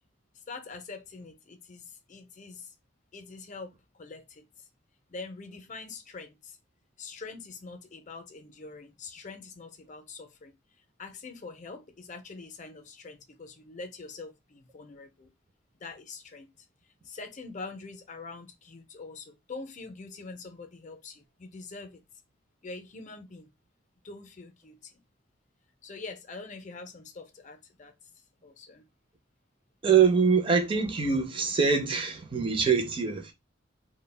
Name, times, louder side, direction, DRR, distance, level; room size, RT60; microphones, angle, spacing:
voice 1, 0.5-2.7 3.1-4.5 5.1-6.6 7.0-10.5 11.0-15.3 15.8-16.5 17.0-22.0 22.6-23.5 24.0-25.0 25.8-27.9 28.4-28.9, left 4 dB, 40° left, 0.5 m, -44 dB
voice 2, 29.8-33.3, right 6 dB, 25° right, 0.5 m, -24 dB
2.3 x 2.1 x 3.2 m
head